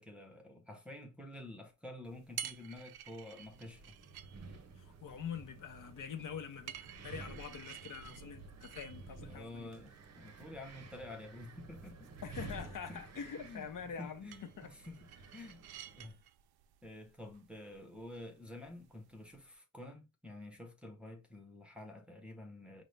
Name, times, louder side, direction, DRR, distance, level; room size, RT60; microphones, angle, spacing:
voice 1, 0.0-3.9 4.4-4.6 9.2-12.1 12.4-12.6 12.9-13.0 13.4-13.7 14.0-15.7 16.0-16.2 16.8-22.8, left 1 dB, 5° right, 0.7 m, -49 dB
sound 1, 2.0-19.5, right 10 dB, 85° right, 0.5 m, -53 dB
Wind, 3.5-16.1, right 3 dB, 45° right, 0.6 m, -52 dB
voice 2, 4.8-6.8 7.0-9.7 12.2-14.7, left 7 dB, 55° left, 0.7 m, -45 dB
5.2 x 2.1 x 3.2 m
wide cardioid pair, 165°, 37 cm